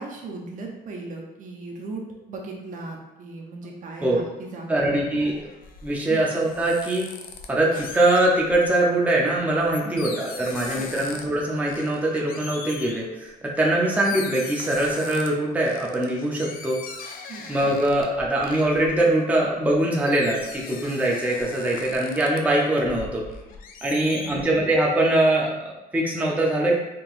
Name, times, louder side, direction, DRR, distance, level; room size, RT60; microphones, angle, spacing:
voice 1, 0.0-4.9 6.1-6.2 9.8-10.2 10.7-11.1 17.3-17.5 23.9-24.4, right 3 dB, 50° right, 0 dB, 0.7 m, -37 dB
voice 2, 4.7-5.4 5.8-7.1 7.5-16.8 17.5-23.2 23.8-26.8, right 1 dB, 10° right, -3 dB, 0.6 m, -22 dB
sound 1, 5.0-8.7 9.2-11.4 11.7-13.0 13.7-13.8 14.0-15.3 15.7-19.7 20.1-22.4 22.8-24.5, left 5 dB, 60° left, 0.5 m, -40 dB
3.7 x 2.8 x 2.5 m, 0.98 s
cardioid pair, 110°, 17 cm